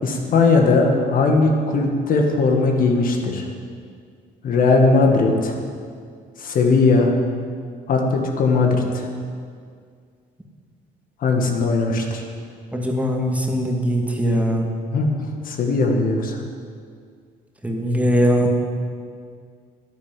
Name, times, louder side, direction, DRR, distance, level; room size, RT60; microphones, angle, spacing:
voice 1, 0.0-3.4 4.4-5.6 6.4-7.1 7.9-9.1 11.2-12.2 14.9-16.4, left 3 dB, 55° left, 2 dB, 2.1 m, -18 dB
voice 2, 12.7-14.7 17.6-18.5, equal, 10° right, 1 dB, 2.1 m, -20 dB
11.0 x 10.5 x 9.3 m, 2.1 s
cardioid pair, 110°, 17 cm